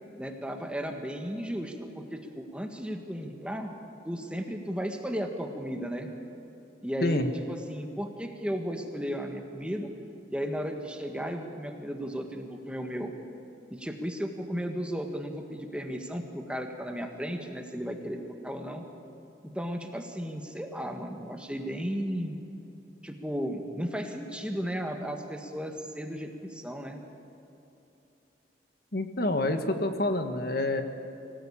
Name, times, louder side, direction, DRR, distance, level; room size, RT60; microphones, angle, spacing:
voice 1, 0.2-3.7 4.0-6.1 6.8-9.9 10.3-13.1 13.7-18.8 19.4-22.4 23.0-27.0, equal, 5° right, 4 dB, 1.7 m, -35 dB
voice 2, 28.9-30.8, left 2 dB, 55° left, 6 dB, 1.6 m, -27 dB
25.0 x 18.0 x 8.7 m, 2.9 s
head